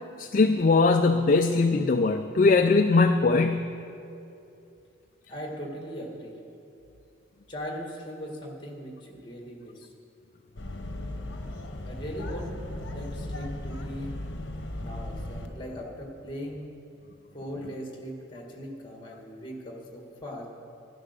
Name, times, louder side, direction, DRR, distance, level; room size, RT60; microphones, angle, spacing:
voice 1, 0.2-3.7, left 3 dB, 40° left, 6 dB, 0.3 m, -21 dB
voice 2, 5.3-6.4 7.5-9.9 11.8-12.6 12.8-14.1 14.8-16.6 17.3-20.5, equal, 20° left, 1 dB, 1.7 m, -39 dB
sound 1, 10.6-15.5, left 1 dB, 55° left, 1.0 m, -36 dB
11.5 x 11.0 x 6.6 m, 2.7 s
head